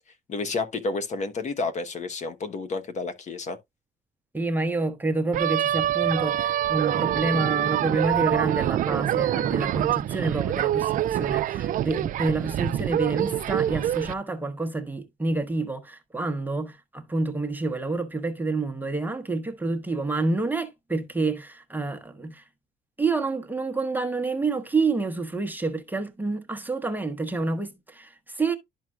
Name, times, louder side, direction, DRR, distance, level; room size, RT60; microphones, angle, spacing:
voice 1, 0.3-3.6, left 3 dB, 45° left, 1.0 m, -30 dB
voice 2, 4.3-22.4 23.0-28.6, right 3 dB, 10° right, 0.9 m, -28 dB
sound 1, 5.3-14.1, right 12 dB, 55° right, 0.5 m, -25 dB
12.0 x 4.6 x 2.4 m
cardioid pair, 110°, 17 cm